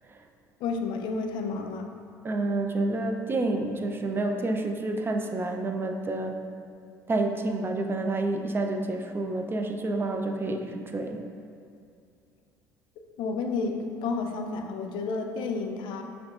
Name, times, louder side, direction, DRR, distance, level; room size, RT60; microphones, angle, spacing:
voice 1, 0.6-1.9 13.2-16.0, left 4 dB, 60° left, 4 dB, 0.4 m, -31 dB
voice 2, 2.2-6.4 7.1-11.2, right 2 dB, 25° right, 4 dB, 0.4 m, -29 dB
6.1 x 2.4 x 2.4 m, 2.4 s
hypercardioid pair, 65°, 9 cm